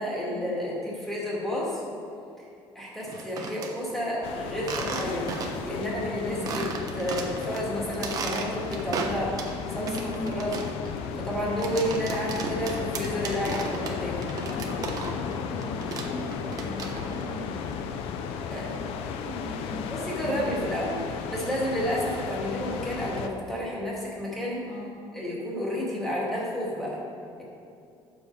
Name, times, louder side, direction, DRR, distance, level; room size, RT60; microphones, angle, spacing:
voice 1, 0.0-1.8 2.4-2.5 2.7-10.8 11.2-14.3 18.5-18.8 19.9-24.6 25.1-27.0, equal, 5° left, -6 dB, 2.4 m, -31 dB
sound 1, 3.0-3.7 4.6-5.7 6.0-6.1 6.5-7.6 7.9-9.6 9.9-15.4 15.6-17.2, right 5 dB, 40° right, 1.0 m, -35 dB
sound 2, 4.2-23.3, left 6 dB, 90° left, 0.7 m, -34 dB
voice 2, 9.8-10.3 14.5-17.7 18.5-19.9 20.2-20.4 24.7-25.2, left 1 dB, 35° left, -4 dB, 1.4 m, -39 dB
11.5 x 7.3 x 4.9 m, 2.7 s
cardioid pair, 165°, 10 cm